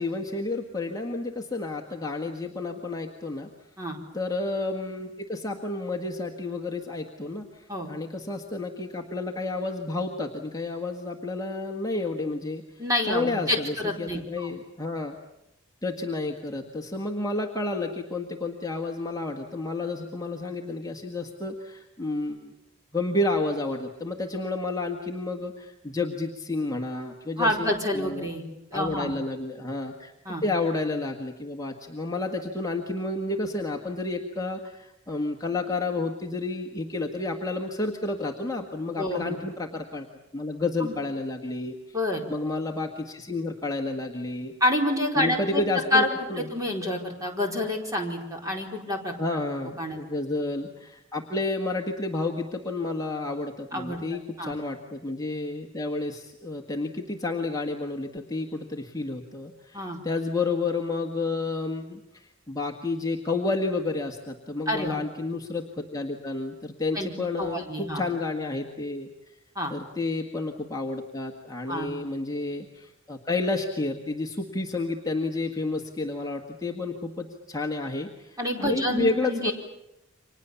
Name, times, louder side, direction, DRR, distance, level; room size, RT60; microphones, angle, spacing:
voice 1, 0.0-3.5 4.1-15.2 15.8-22.5 22.9-28.3 28.7-40.1 40.3-42.0 42.3-44.5 45.2-46.5 49.2-69.3 69.7-79.5, left 2 dB, 15° left, 0 dB, 1.7 m, -31 dB
voice 2, 12.8-14.5 27.4-28.4 28.7-29.1 30.2-30.4 38.9-39.3 40.8-41.0 41.9-42.2 44.6-45.6 45.9-46.1 46.4-49.1 49.8-50.0 53.7-54.0 54.4-54.5 59.7-60.0 64.7-65.0 66.9-67.1 67.4-68.0 69.5-69.7 71.7-71.9 78.4-79.5, left 1 dB, 15° right, 1 dB, 4.5 m, -28 dB
30.0 x 25.5 x 7.1 m, 0.86 s
head